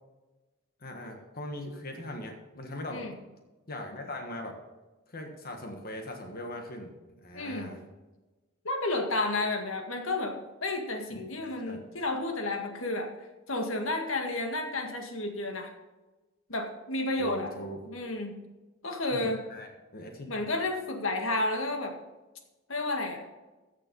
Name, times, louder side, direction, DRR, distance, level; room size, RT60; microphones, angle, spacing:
voice 1, 0.8-3.1 3.7-4.6 5.1-7.8 11.1-11.8 17.2-17.8 19.1-20.4, left 1 dB, 50° left, 3 dB, 1.5 m, -40 dB
voice 2, 7.3-7.7 8.6-13.1 13.5-15.7 16.5-17.5 17.9-18.4 18.8-19.4 20.3-22.0 22.7-23.2, left 2 dB, 75° left, 4 dB, 1.8 m, -31 dB
15.0 x 6.9 x 5.4 m, 1.2 s
head